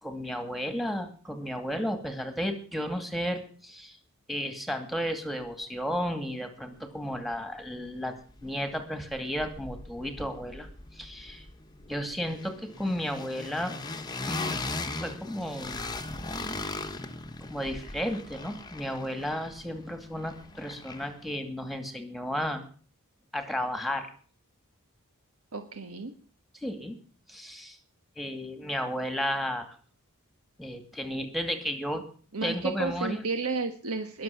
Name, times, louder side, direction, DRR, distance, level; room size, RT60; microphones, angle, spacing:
voice 1, 0.0-4.0 4.3-8.1 8.4-10.7 10.9-11.4 11.9-13.8 14.3-15.8 17.4-22.6 23.3-24.1 26.6-27.0 27.3-27.8 28.2-29.7 30.6-32.0 32.4-33.3, equal, ahead, 7 dB, 2.3 m, -33 dB
sound 1, 7.3-7.4 7.7-8.8 9.1-21.3, left 2 dB, 20° left, 1.3 m, -39 dB
voice 2, 25.5-26.1 32.3-34.2, right 4 dB, 70° right, 7 dB, 1.4 m, -32 dB
21.0 x 7.0 x 7.0 m, 0.43 s
head